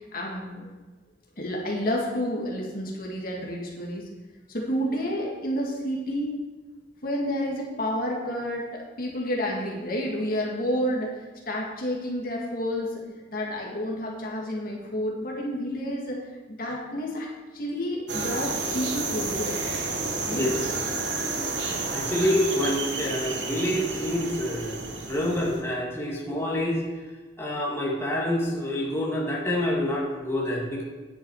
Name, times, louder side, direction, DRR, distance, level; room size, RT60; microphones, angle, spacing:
voice 1, 0.1-0.7 1.4-4.1 4.5-6.4 7.0-11.2 11.5-13.0 13.3-17.3 17.5-19.6 20.2-20.5, equal, 55° left, -2 dB, 2.0 m, -30 dB
sound 1, 18.1-25.6, right 3 dB, 80° right, 1.8 m, -31 dB
voice 2, 21.5-26.8 27.4-30.8, left 1 dB, 15° left, -5 dB, 2.3 m, -27 dB
10.5 x 8.8 x 4.7 m, 1.3 s
head